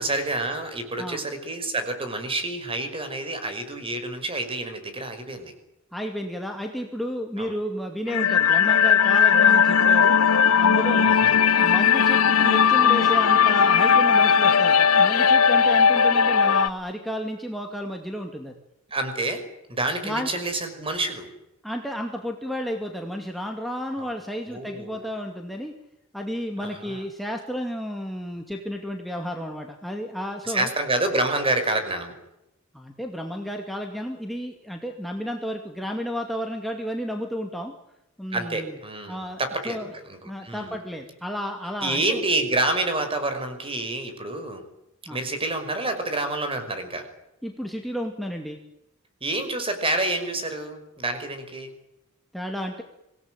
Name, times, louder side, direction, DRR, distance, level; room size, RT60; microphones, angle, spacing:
voice 1, 0.0-5.5 7.4-7.6 11.1-11.4 18.9-19.4 19.7-21.3 24.5-25.0 26.6-27.0 30.4-32.1 38.3-39.8 40.1-40.8 41.8-44.6 45.1-47.1 49.2-51.7, right 2 dB, 25° right, 7 dB, 5.5 m, -28 dB
voice 2, 5.9-10.2 10.6-11.1 11.6-18.5 20.0-20.3 21.6-25.7 26.1-30.7 32.7-37.7 38.2-38.8 39.1-39.4 39.6-39.9 40.2-42.2 45.1-45.2 47.4-48.6 52.3-52.8, equal, ahead, 2 dB, 2.3 m, -32 dB
sound 1, 8.1-16.7, left 7 dB, 90° left, 0.9 m, -18 dB
26.0 x 18.5 x 9.1 m, 0.88 s
head